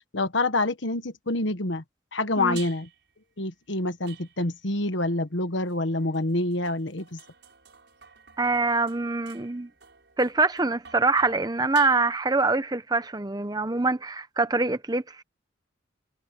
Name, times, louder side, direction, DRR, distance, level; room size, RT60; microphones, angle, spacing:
voice 1, 0.1-1.8 2.1-2.9 3.4-7.2, left 2 dB, 65° left, 1.5 m, -27 dB
sound 1, 2.6-3.1 4.1-4.7 5.7-12.5, right 9 dB, 60° right, 7.3 m, -50 dB
voice 2, 8.4-9.7 10.2-15.2, right 3 dB, 20° right, 0.9 m, -24 dB
head